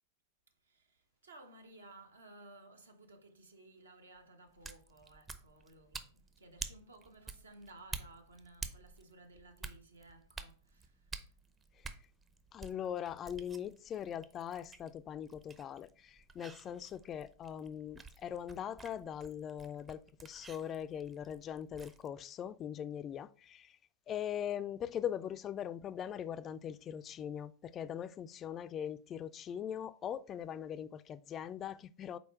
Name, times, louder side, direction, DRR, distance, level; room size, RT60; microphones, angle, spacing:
voice 1, 0.6-11.4, right 2 dB, 70° right, 1.0 m, -57 dB
sound 1, 4.5-22.1, right 4 dB, 20° right, 0.6 m, -50 dB
voice 2, 12.5-23.8 24.1-32.2, left 9 dB, 30° left, 0.3 m, -41 dB
5.4 x 4.2 x 4.5 m
figure-of-eight pair, 90°, 0 cm